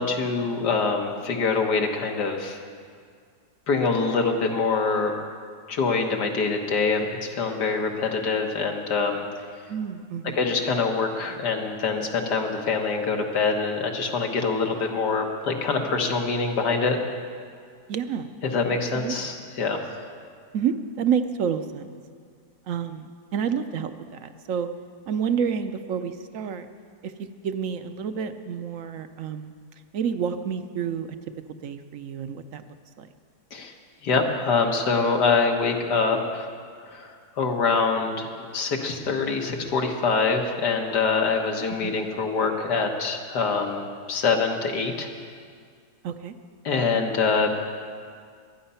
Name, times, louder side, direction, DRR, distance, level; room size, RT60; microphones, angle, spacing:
voice 1, 0.0-2.6 3.7-5.1 5.7-9.3 10.3-17.0 18.4-19.8 33.5-33.7 34.0-36.5 36.9-45.1 46.6-47.5, left 4 dB, 85° left, 3 dB, 2.0 m, -25 dB
voice 2, 9.7-10.4 17.9-18.3 18.9-19.3 20.5-21.9 22.7-24.7 25.1-26.7 27.0-29.5 29.9-31.1 31.6-32.6 33.0-33.1 41.8-42.0 46.0-46.3, right 7 dB, 60° right, 9 dB, 1.0 m, -29 dB
23.5 x 9.7 x 5.7 m, 2.1 s
omnidirectional pair, 1.7 m